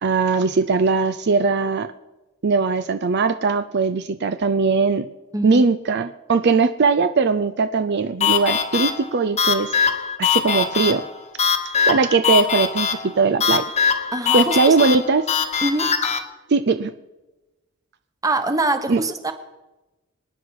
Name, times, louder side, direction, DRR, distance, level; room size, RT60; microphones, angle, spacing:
voice 1, 0.0-1.9 2.4-5.1 5.4-9.8 10.2-11.0 11.9-13.6 14.3-15.2 16.5-16.9 18.9-19.0, right 4 dB, 55° right, 10 dB, 0.5 m, -20 dB
voice 2, 5.3-5.7 14.1-14.8 15.6-15.9 18.2-19.3, right 2 dB, 15° right, 8 dB, 1.2 m, -23 dB
sound 1, 8.2-16.2, left 7 dB, 35° left, 1.3 m, -22 dB
25.5 x 9.9 x 4.8 m, 1.1 s
head